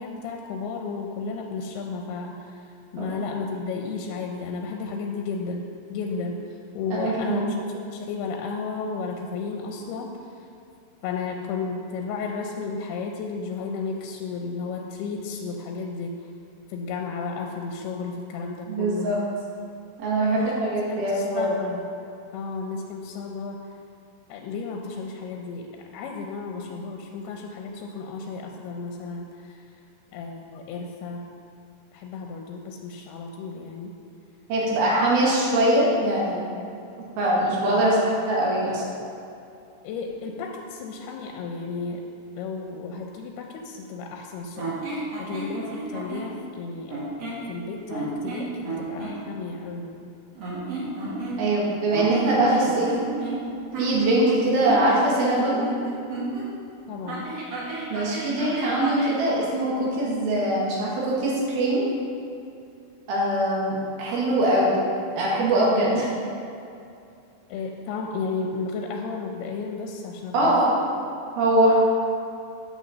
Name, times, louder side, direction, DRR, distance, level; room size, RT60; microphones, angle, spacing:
voice 1, 0.0-2.6 2.9-6.4 6.7-7.5 7.7-10.1 11.0-16.1 16.7-19.2 20.3-20.6 20.9-21.8 22.3-23.7 24.3-29.6 30.1-31.2 31.9-33.9 37.5-38.1 39.8-42.0 42.4-47.1 47.5-50.1 56.9-57.3 67.5-70.8, left 4 dB, 80° left, 2 dB, 2.6 m, -33 dB
voice 2, 6.9-7.4 18.7-19.2 20.0-21.5 34.5-36.4 37.2-38.8 51.4-52.9 53.8-55.6 57.9-61.9 63.1-64.8 65.2-66.1 70.3-70.8 71.4-71.7, right 1 dB, 70° right, -5 dB, 3.7 m, -22 dB
sound 1, 44.6-46.3 46.9-47.5 47.9-49.2 50.4-51.6 51.9-56.5 57.1-59.2, right 2 dB, 50° right, 2.3 m, -32 dB
8.7 x 6.3 x 6.7 m, 2.5 s
omnidirectional pair, 4.6 m